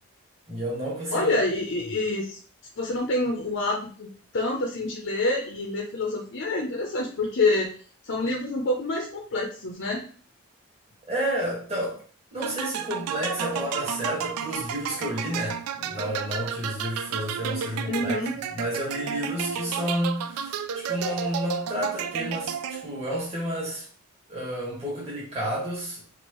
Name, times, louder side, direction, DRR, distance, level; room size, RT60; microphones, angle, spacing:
voice 1, 0.5-1.3 11.1-12.0 12.3-18.2 18.5-23.8 24.3-26.0, equal, 30° right, -5 dB, 1.5 m, -31 dB
voice 2, 1.1-2.4 2.8-7.7 8.0-10.0 17.9-18.3, left 2 dB, 55° left, 0 dB, 0.6 m, -27 dB
sound 1, 12.4-23.1, right 8 dB, 85° right, 0.3 m, -32 dB
4.5 x 2.5 x 3.0 m, 0.43 s
head